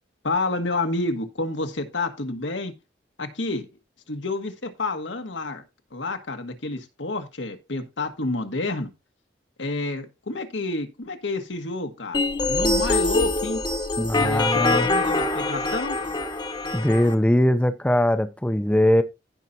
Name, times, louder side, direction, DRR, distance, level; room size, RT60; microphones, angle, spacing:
voice 1, 0.2-2.8 3.2-3.7 4.1-5.6 5.9-8.9 9.6-12.2 12.5-13.6 14.1-16.0, left 2 dB, 85° left, 1.5 m, -29 dB
sound 1, 12.1-17.1, left 2 dB, 25° left, 1.0 m, -24 dB
voice 2, 14.0-14.9 16.7-19.0, left 1 dB, 5° left, 0.5 m, -21 dB
15.0 x 5.6 x 2.7 m
head